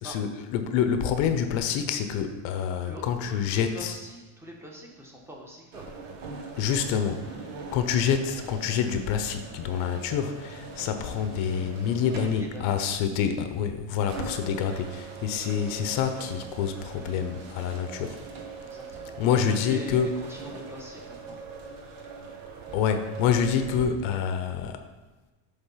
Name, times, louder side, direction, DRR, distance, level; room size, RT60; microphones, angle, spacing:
voice 1, 0.0-4.0 6.6-18.2 19.2-20.1 22.7-24.8, left 8 dB, 75° left, 8 dB, 0.8 m, -27 dB
voice 2, 2.8-5.9 11.9-13.3 18.6-21.4, equal, 5° right, -2 dB, 1.3 m, -43 dB
sound 1, 5.7-23.8, right 4 dB, 70° right, 1.4 m, -42 dB
8.1 x 3.7 x 5.7 m, 1.2 s
cardioid pair, 135°, 47 cm